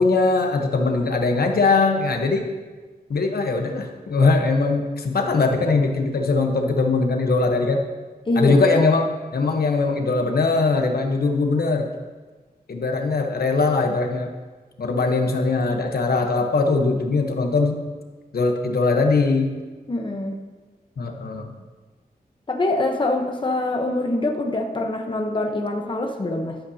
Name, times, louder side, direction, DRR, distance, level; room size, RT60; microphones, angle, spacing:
voice 1, 0.0-2.4 3.1-7.8 8.4-11.9 12.7-14.3 14.8-17.8 18.3-19.5 21.0-21.5, left 3 dB, 70° left, 3 dB, 1.1 m, -21 dB
voice 2, 8.3-8.6 19.9-20.4 22.5-26.6, left 2 dB, 30° left, 2 dB, 1.0 m, -24 dB
14.0 x 11.5 x 2.8 m, 1.3 s
wide cardioid pair, 130°, 16 cm